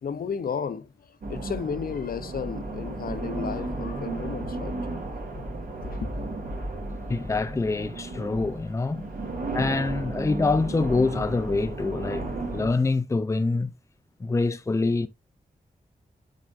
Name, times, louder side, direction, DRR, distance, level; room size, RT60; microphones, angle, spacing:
voice 1, 0.0-4.8 5.4-5.5 5.8-6.1, left 6 dB, 70° left, 0.6 m, -33 dB
sound 1, 1.2-12.7, right 2 dB, 70° right, 2.7 m, -34 dB
voice 2, 7.1-9.0 9.5-12.3 12.5-13.7 14.2-15.1, left 3 dB, 20° left, 0.5 m, -25 dB
7.4 x 5.0 x 2.5 m
wide cardioid pair, 115°, 15 cm